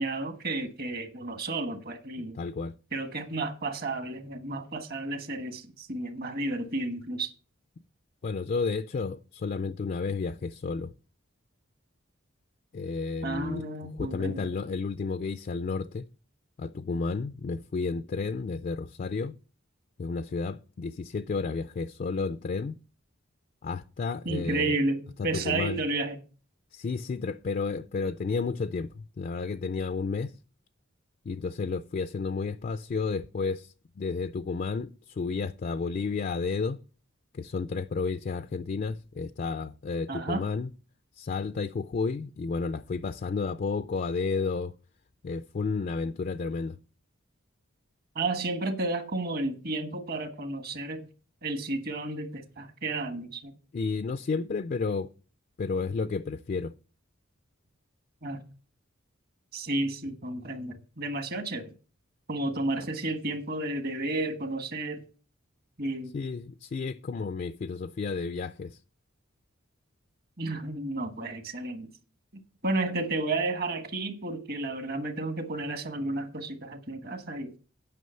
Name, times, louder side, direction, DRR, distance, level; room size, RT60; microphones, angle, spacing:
voice 1, 0.0-2.4 2.9-7.3 13.2-14.5 24.2-26.2 40.1-40.4 48.1-51.1 51.4-53.5 58.2-58.4 59.5-61.7 62.3-65.0 65.8-66.1 70.4-71.9 72.6-77.5, right 2 dB, 50° right, 1.3 m, -32 dB
voice 2, 2.2-2.7 8.2-10.9 12.7-13.7 14.0-16.1 16.6-19.3 20.0-22.8 23.6-24.8 25.2-25.8 26.7-30.3 31.3-36.8 37.3-40.7 41.2-44.7 45.2-46.8 53.7-55.1 55.6-56.7 66.1-68.8, left 4 dB, 40° left, 0.3 m, -32 dB
9.4 x 6.0 x 5.5 m
head